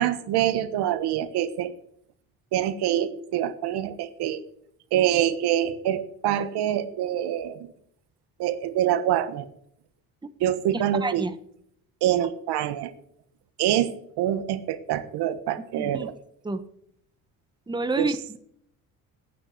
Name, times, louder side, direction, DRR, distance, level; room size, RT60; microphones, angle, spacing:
voice 1, 0.0-1.7 2.5-4.4 4.9-7.6 8.4-9.5 10.4-11.3 12.0-12.9 13.6-16.1 18.0-18.1, right 11 dB, 75° right, 11 dB, 1.3 m, -25 dB
voice 2, 10.7-11.3 15.8-16.1 16.4-16.6 17.7-18.4, right 3 dB, 10° right, 10 dB, 1.1 m, -29 dB
9.1 x 8.8 x 8.1 m, 0.68 s
supercardioid pair, 85°, 40 cm